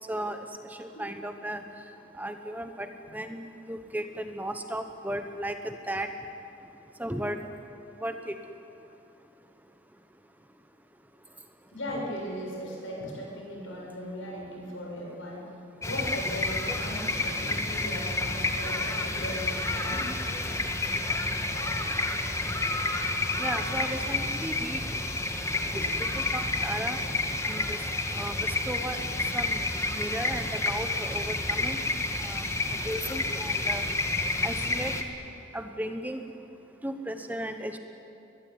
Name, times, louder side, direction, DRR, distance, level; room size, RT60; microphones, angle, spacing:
voice 1, 0.1-1.6 2.2-6.1 7.0-7.4 8.0-8.3 23.4-24.8 25.7-25.9 26.1-27.0 27.4-27.8 28.1-29.0 29.3-29.6 29.9-31.8 32.2-32.5 32.8-33.8 34.4-34.9 35.5-36.2 36.8-37.8, right 1 dB, 10° right, 6 dB, 1.1 m, -35 dB
voice 2, 11.7-15.5 15.8-20.1 21.5-21.9 25.7-25.9, equal, 80° left, -2 dB, 7.0 m, -38 dB
sound 1, 15.8-35.0, left 2 dB, 15° left, 1.5 m, -30 dB
22.0 x 22.0 x 9.4 m, 2.7 s
head